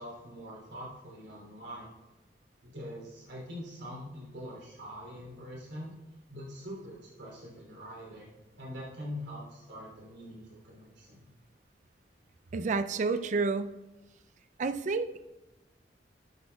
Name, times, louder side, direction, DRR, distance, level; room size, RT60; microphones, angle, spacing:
voice 1, 0.0-1.9 2.6-5.9 6.3-11.3, equal, 75° right, -3 dB, 3.1 m, -44 dB
voice 2, 12.5-13.8 14.6-15.3, right 4 dB, 40° right, 11 dB, 0.3 m, -30 dB
11.5 x 8.5 x 2.3 m, 1.1 s
head